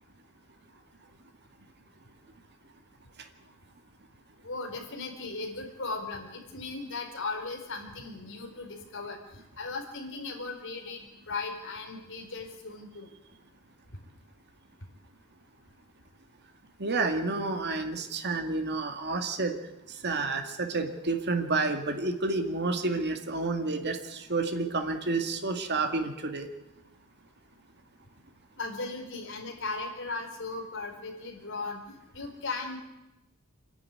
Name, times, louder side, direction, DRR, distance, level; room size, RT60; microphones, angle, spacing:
voice 1, 4.4-13.1 28.6-32.8, left 3 dB, 60° left, 2 dB, 4.5 m, -37 dB
voice 2, 16.8-19.6 19.9-26.5, right 3 dB, 50° right, 5 dB, 2.1 m, -30 dB
26.5 x 11.5 x 9.8 m, 0.96 s
head